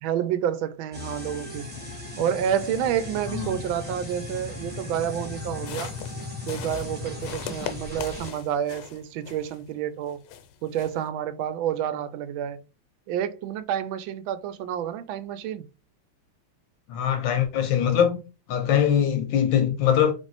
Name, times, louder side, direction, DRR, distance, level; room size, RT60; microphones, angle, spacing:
voice 1, 0.0-1.7 2.2-5.9 6.5-10.2 10.6-12.6 13.1-15.6, right 9 dB, 75° right, 1.3 m, -29 dB
sound 1, 0.9-8.3, left 3 dB, 5° right, 1.1 m, -37 dB
sound 2, 5.5-9.7 10.1-11.1, left 10 dB, 90° left, 1.5 m, -40 dB
voice 2, 16.9-18.2 18.5-20.1, left 9 dB, 70° left, 1.2 m, -22 dB
3.5 x 3.2 x 4.0 m
omnidirectional pair, 2.3 m